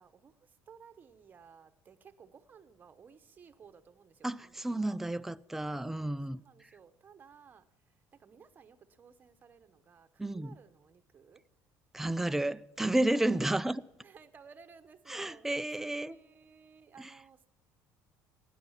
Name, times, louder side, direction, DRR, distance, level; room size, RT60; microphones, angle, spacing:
voice 1, 0.0-5.0 5.8-7.7 8.1-11.4 13.1-13.4 14.0-15.5 15.8-17.5, right 6 dB, 30° right, 0.9 m, -57 dB
voice 2, 4.2-6.7 10.2-10.6 11.9-13.8 15.1-16.2 17.0-17.1, right 1 dB, 5° right, 0.3 m, -32 dB
16.5 x 10.0 x 5.8 m
cardioid pair, 135°, 6 cm